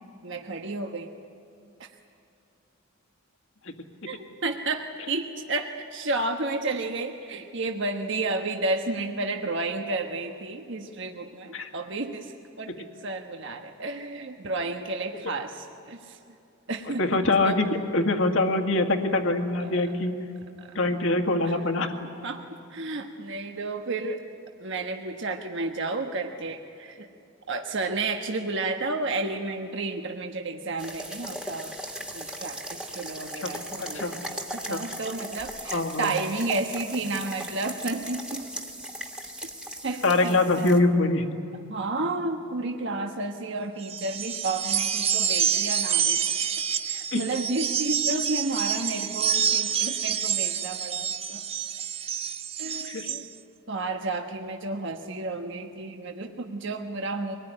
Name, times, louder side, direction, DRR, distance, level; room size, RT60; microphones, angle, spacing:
voice 1, 0.2-1.1 1.8-1.9 4.0-16.2 16.7-17.2 17.4-17.6 19.6-19.9 20.6-20.7 21.4-21.6 22.2-22.4 22.7-24.2 24.6-27.1 27.5-31.7 32.1-38.4 39.8-40.7 41.7-46.4 46.9-51.4 52.6-53.3 53.7-57.4, right 2 dB, 60° right, 4 dB, 1.3 m, -32 dB
voice 2, 17.0-20.1 20.7-21.9 33.4-33.5 33.8-34.1 34.7-34.8 35.7-36.1 40.0-41.2 47.1-47.2 52.8-53.1, left 2 dB, 65° left, 5 dB, 2.0 m, -24 dB
sound 1, 30.8-40.8, right 1 dB, 5° right, 1.7 m, -38 dB
sound 2, 43.8-53.2, right 8 dB, 30° right, 0.7 m, -27 dB
24.0 x 20.0 x 9.8 m, 2.7 s
head